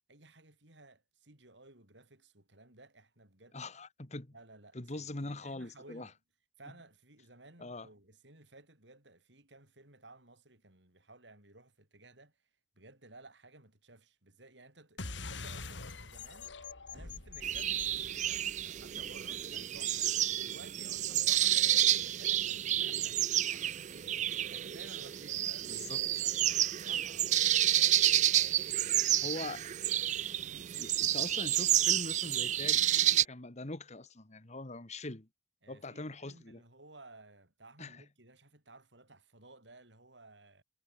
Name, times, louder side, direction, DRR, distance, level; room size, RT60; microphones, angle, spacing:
voice 1, 0.1-3.6 4.3-6.1 6.6-12.5 12.8-16.5 16.9-25.7 26.2-27.9 28.3-29.4 30.4-30.7 35.6-40.6, right 2 dB, 70° right, 7.3 m, -57 dB
voice 2, 3.5-4.3 4.7-6.1 7.6-7.9 25.7-26.2 29.1-29.6 30.8-32.9 33.2-35.3 35.7-36.6 37.8-38.0, left 2 dB, 40° left, 1.7 m, -42 dB
sound 1, 15.0-19.9, left 4 dB, 80° left, 2.6 m, -45 dB
sound 2, 17.4-33.2, right 12 dB, 40° right, 0.4 m, -30 dB
head